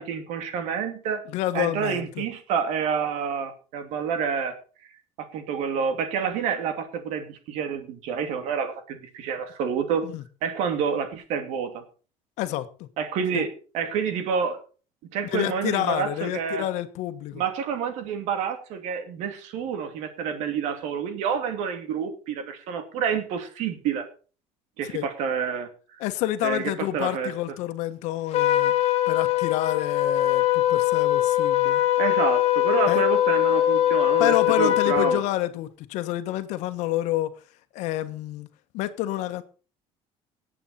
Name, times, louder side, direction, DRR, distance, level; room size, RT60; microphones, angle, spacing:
voice 1, 0.0-1.2 1.5-4.5 5.2-10.0 10.4-11.8 13.0-14.6 15.1-16.6 17.3-24.1 24.8-25.7 26.4-27.3 32.0-35.2, right 7 dB, 75° right, 7 dB, 2.8 m, -28 dB
voice 2, 1.3-2.2 10.0-10.2 12.4-12.9 13.3-13.4 15.3-17.4 24.8-25.1 26.0-28.7 29.1-31.8 32.9-33.0 34.2-37.3 37.7-38.5 38.7-39.4, left 14 dB, 75° left, 10 dB, 1.3 m, -28 dB
Trumpet, 28.3-35.2, left 13 dB, 60° left, 1.5 m, -22 dB
18.5 x 8.5 x 4.3 m, 0.38 s
cardioid pair, 125°, 12 cm